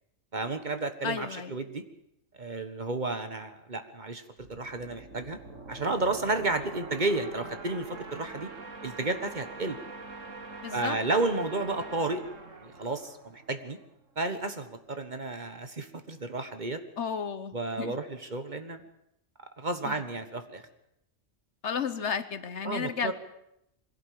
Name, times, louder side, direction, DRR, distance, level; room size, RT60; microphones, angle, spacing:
voice 1, 0.3-1.8 2.4-5.4 5.7-8.5 8.8-9.8 10.7-12.2 12.6-13.8 14.2-16.8 17.5-18.8 19.6-20.7 22.6-23.1, right 2 dB, 40° right, 9 dB, 1.5 m, -32 dB
voice 2, 1.0-1.5 10.6-11.0 17.0-17.9 19.8-20.0 21.6-23.1, left 6 dB, 65° left, 13 dB, 1.3 m, -33 dB
sound 1, 4.4-13.9, right 3 dB, 80° right, 2.2 m, -44 dB
22.5 x 16.5 x 8.5 m, 0.81 s
omnidirectional pair, 1.3 m